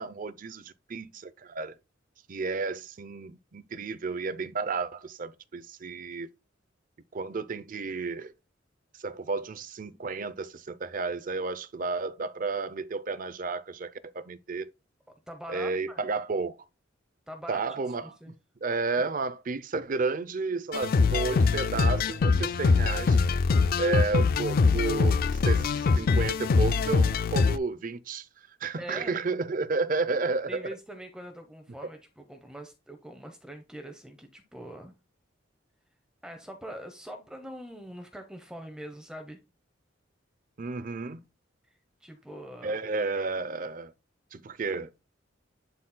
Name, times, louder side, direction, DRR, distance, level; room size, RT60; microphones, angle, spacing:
voice 1, 0.0-1.8 2.3-6.3 7.1-8.3 8.9-14.7 15.5-16.6 17.5-18.2 18.6-23.2 23.8-28.3 28.6-30.6 40.6-41.2 42.6-43.9 44.3-44.9, right 4 dB, 45° right, 0.5 m, -32 dB
voice 2, 15.3-16.0 17.3-17.6 18.0-18.3 28.8-29.2 30.5-34.9 36.2-39.4 42.0-42.8, equal, 5° right, 0.7 m, -43 dB
sound 1, 20.7-27.6, left 4 dB, 50° left, 0.3 m, -23 dB
11.5 x 4.1 x 2.2 m
head